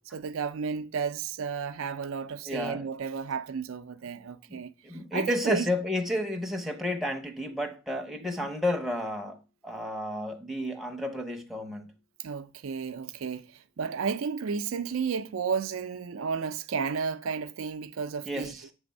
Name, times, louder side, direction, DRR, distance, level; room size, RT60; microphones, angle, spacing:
voice 1, 0.1-4.7 5.1-5.7 8.2-8.3 12.2-18.6, right 6 dB, 75° right, 0.4 m, -32 dB
voice 2, 2.5-2.9 4.5-11.9 18.3-18.7, left 1 dB, ahead, 0.8 m, -32 dB
7.8 x 3.4 x 5.2 m
head